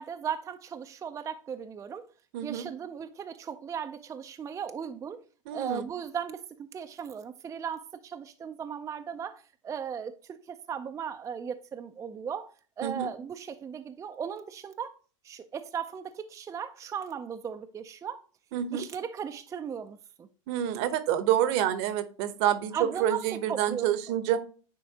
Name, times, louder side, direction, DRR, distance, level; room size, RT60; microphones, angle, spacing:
voice 1, 0.0-2.1 2.4-5.2 5.5-12.5 12.8-14.9 15.2-18.2 18.7-20.3 22.7-24.2, right 7 dB, 20° right, 0.4 m, -37 dB
voice 2, 2.3-2.7 5.5-5.8 12.8-13.1 18.5-18.8 20.5-24.4, right 11 dB, 55° right, 0.9 m, -28 dB
9.6 x 3.7 x 2.8 m
hypercardioid pair, 110°, 17 cm